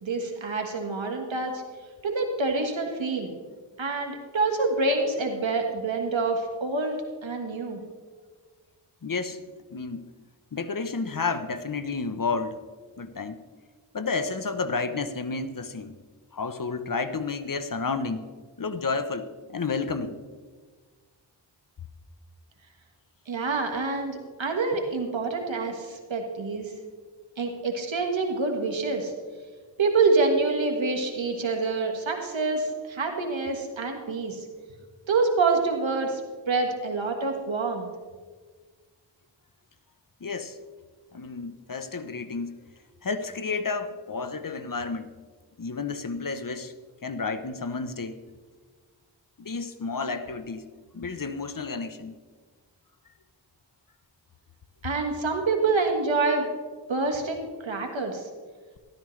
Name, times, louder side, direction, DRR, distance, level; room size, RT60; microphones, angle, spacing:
voice 1, 0.0-1.6 2.0-3.3 3.8-7.8 23.3-26.7 27.4-29.1 29.8-34.4 35.1-36.2 36.5-37.9 54.8-56.5 56.9-58.2, right 3 dB, 80° right, 3 dB, 1.6 m, -26 dB
voice 2, 9.0-9.4 9.7-10.1 10.5-12.6 13.0-13.4 13.9-15.9 16.3-18.2 18.6-20.2 40.2-40.6 41.1-42.6 43.0-45.1 45.6-46.7 47.0-48.2 49.4-50.7 50.9-52.2, left 4 dB, 45° left, 11 dB, 0.8 m, -31 dB
13.0 x 12.5 x 3.2 m, 1.5 s
cardioid pair, 40°, 45 cm